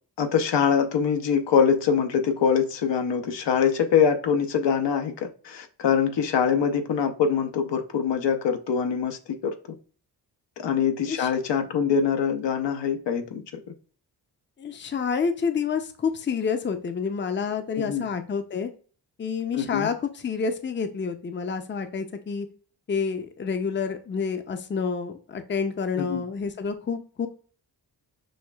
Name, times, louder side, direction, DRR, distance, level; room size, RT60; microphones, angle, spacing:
voice 1, 0.2-9.5 10.6-13.4 17.8-18.1 19.5-19.9 26.0-26.2, left 7 dB, 70° left, 6 dB, 0.7 m, -24 dB
voice 2, 14.6-18.7 19.2-22.5 22.9-27.3, left 5 dB, 25° left, 8 dB, 0.5 m, -28 dB
6.3 x 2.4 x 2.3 m, 0.40 s
cardioid pair, 55°, 44 cm